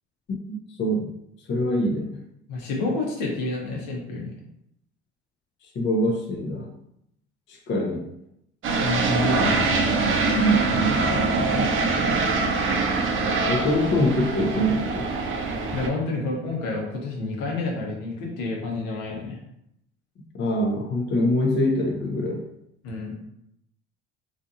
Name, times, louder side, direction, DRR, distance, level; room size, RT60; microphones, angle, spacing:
voice 1, 0.5-1.1 1.5-2.2 5.8-6.7 7.5-8.1 10.4-11.7 13.4-15.1 20.3-22.5, equal, 35° left, 1 dB, 0.5 m, -24 dB
voice 2, 2.5-4.3 8.8-9.8 15.7-19.4 22.8-23.1, left 2 dB, 70° left, -1 dB, 0.9 m, -29 dB
sound 1, 8.6-15.9, right 3 dB, 40° right, 0.6 m, -24 dB
2.6 x 2.4 x 2.6 m, 0.78 s
hypercardioid pair, 70°, 33 cm